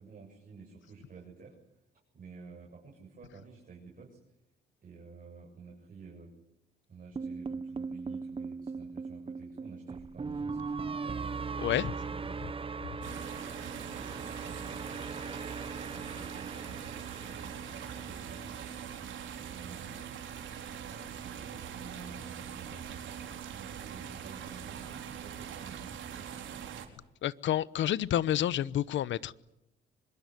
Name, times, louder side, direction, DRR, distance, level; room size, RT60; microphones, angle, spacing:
voice 1, 0.0-1.6 2.1-4.2 4.8-6.3 6.9-11.3 11.8-12.4 13.0-15.2 15.8-18.7 19.4-20.2 20.7-22.7 23.2-26.9, right 4 dB, 45° right, 7.5 m, -51 dB
sound 1, 7.2-19.4, right 4 dB, 25° right, 1.0 m, -39 dB
voice 2, 11.6-11.9 12.8-12.9 27.2-29.4, left 11 dB, 70° left, 0.9 m, -29 dB
sound 2, 13.0-26.9, right 8 dB, 75° right, 4.5 m, -42 dB
25.5 x 22.5 x 9.8 m
cardioid pair, 90°, 20 cm